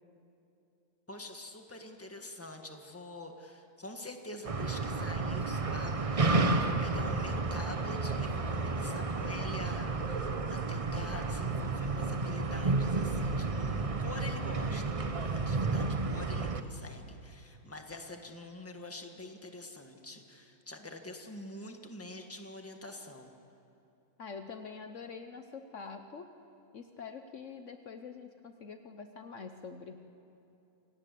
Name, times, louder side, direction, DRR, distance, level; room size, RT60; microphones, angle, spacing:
voice 1, 1.1-23.3, left 2 dB, 10° left, 4 dB, 1.6 m, -46 dB
sound 1, 4.4-16.6, right 3 dB, 30° right, 0.8 m, -31 dB
voice 2, 24.2-26.2 26.7-30.0, left 5 dB, 60° left, 7 dB, 1.2 m, -45 dB
28.0 x 17.5 x 8.4 m, 2.8 s
omnidirectional pair, 1.5 m